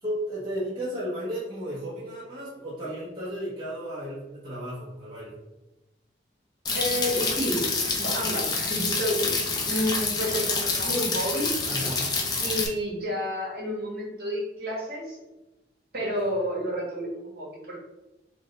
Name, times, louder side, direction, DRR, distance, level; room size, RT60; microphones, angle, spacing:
voice 1, 0.0-5.3 11.6-12.0, equal, 30° right, -9 dB, 1.0 m, -34 dB
sound 1, 6.7-12.7, left 3 dB, 25° left, 0.5 m, -27 dB
voice 2, 6.7-7.6 8.0-9.4 9.6-11.5 12.4-15.2 15.9-17.8, equal, 60° right, -4 dB, 1.4 m, -30 dB
3.5 x 2.2 x 3.9 m, 1.0 s
head